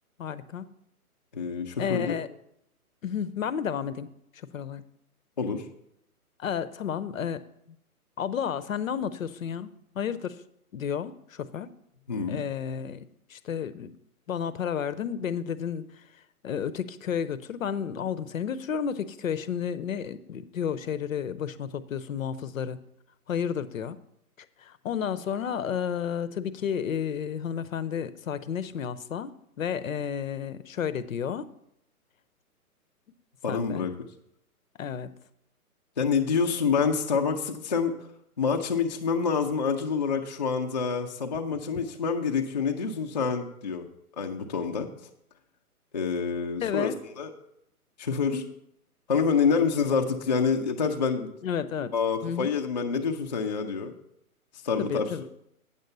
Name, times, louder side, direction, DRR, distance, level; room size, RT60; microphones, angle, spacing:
voice 1, 0.2-0.7 1.8-2.3 3.0-4.1 4.5-4.8 6.4-7.4 8.2-10.4 10.7-11.7 12.3-13.0 13.3-14.0 14.3-15.8 16.4-22.8 23.3-24.0 24.6-31.5 33.5-33.9 34.8-35.1 46.6-46.9 48.3-48.4 51.4-51.9 52.2-52.5 54.8-55.4, left 8 dB, 60° left, 15 dB, 0.7 m, -31 dB
voice 2, 1.3-2.2 5.4-5.7 12.1-12.4 33.4-33.9 36.0-38.1 38.4-43.9 44.2-44.9 45.9-47.3 48.0-48.4 49.1-51.3 51.9-53.9 54.6-55.1, left 5 dB, 30° left, 2 dB, 0.4 m, -27 dB
8.8 x 6.8 x 5.3 m, 0.76 s
hypercardioid pair, 145°, 45 cm